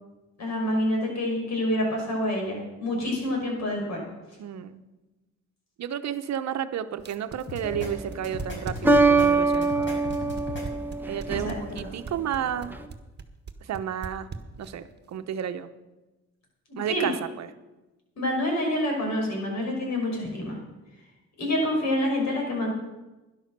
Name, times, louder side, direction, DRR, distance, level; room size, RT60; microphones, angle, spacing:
voice 1, 0.4-4.0 11.4-11.6 11.8-11.9 16.9-17.1 18.2-20.6 21.4-22.7, left 1 dB, 65° left, 0 dB, 6.0 m, -27 dB
voice 2, 4.4-4.8 5.8-10.1 11.1-12.8 13.6-14.3 14.6-15.7 16.8-17.5, right 9 dB, 60° right, 11 dB, 0.9 m, -32 dB
sound 1, 7.0-14.9, right 5 dB, 35° right, 1.4 m, -38 dB
sound 2, 7.5-7.9 8.2-9.3 9.6-10.6, left 2 dB, 40° left, 5.3 m, -37 dB
sound 3, 7.6-8.1 8.8-11.7, right 3 dB, 5° right, 1.0 m, -23 dB
12.0 x 11.0 x 6.7 m, 1.1 s
cardioid pair, 90°, 30 cm